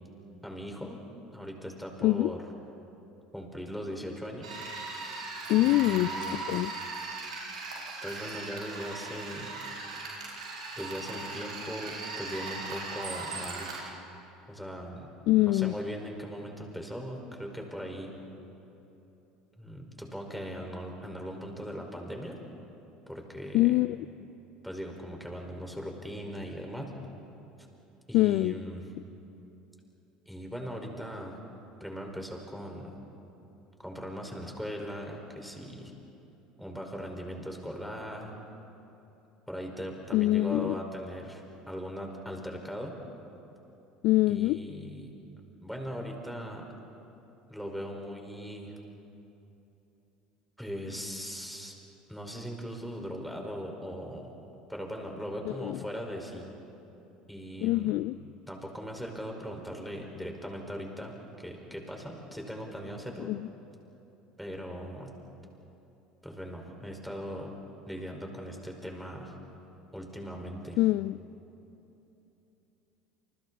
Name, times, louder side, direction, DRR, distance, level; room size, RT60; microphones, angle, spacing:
voice 1, 0.4-1.0 1.3-2.4 3.3-4.6 5.6-6.5 8.0-9.5 10.8-13.8 14.5-15.1 15.4-18.1 19.6-22.4 23.1-23.8 24.6-26.9 28.1-28.8 30.3-31.4 31.8-32.9 33.8-35.9 36.6-38.3 39.5-42.9 44.3-45.1 45.6-46.7 47.5-48.8 50.6-51.7 52.1-54.3 54.7-56.5 57.3-58.0 58.5-63.3 64.4-65.1 66.2-67.5 67.9-69.3 69.9-70.8, equal, ahead, 1 dB, 5.2 m, -39 dB
voice 2, 2.0-2.3 5.5-6.1 6.5-6.7 15.3-15.8 23.5-24.0 28.1-28.6 40.1-40.8 44.0-44.6 55.5-55.8 57.6-58.2 63.3-63.5 70.8-71.2, left 18 dB, 60° left, 16 dB, 0.4 m, -24 dB
sound 1, 4.4-13.8, right 3 dB, 85° right, 5.4 m, -38 dB
29.0 x 28.5 x 4.3 m, 3.0 s
hypercardioid pair, 70°, 4 cm